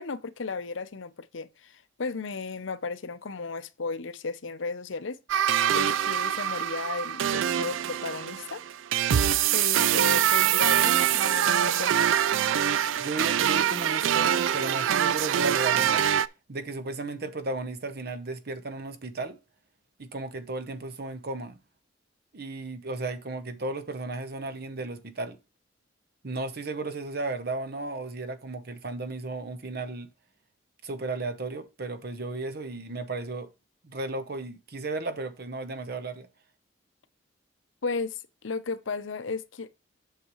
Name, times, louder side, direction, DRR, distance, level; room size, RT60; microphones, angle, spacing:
voice 1, 0.0-5.2 5.7-8.6 9.5-12.2 37.8-39.9, left 4 dB, 80° left, 0.7 m, -35 dB
sound 1, 5.3-16.3, right 10 dB, 80° right, 0.4 m, -24 dB
voice 2, 13.0-16.1 16.5-19.4 20.0-21.6 22.3-25.4 26.2-30.1 30.8-33.5 33.8-36.3, right 3 dB, 55° right, 0.9 m, -34 dB
8.0 x 6.8 x 3.0 m
head